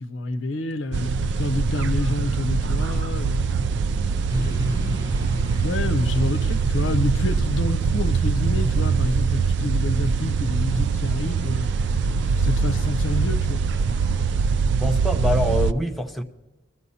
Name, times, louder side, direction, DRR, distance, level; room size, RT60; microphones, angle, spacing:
voice 1, 0.0-3.5 4.4-5.1 5.6-11.7 12.0-13.6, left 2 dB, 80° left, 0.7 m, -28 dB
sound 1, 0.9-15.7, right 5 dB, 60° right, 0.3 m, -23 dB
Musical instrument, 2.0-15.7, equal, 40° right, 3.0 m, -46 dB
Motorcycle / Traffic noise roadway noise, 4.3-9.6, equal, 15° right, 1.3 m, -32 dB
voice 2, 14.8-16.2, left 1 dB, ahead, 0.6 m, -24 dB
21.5 x 13.5 x 2.8 m
head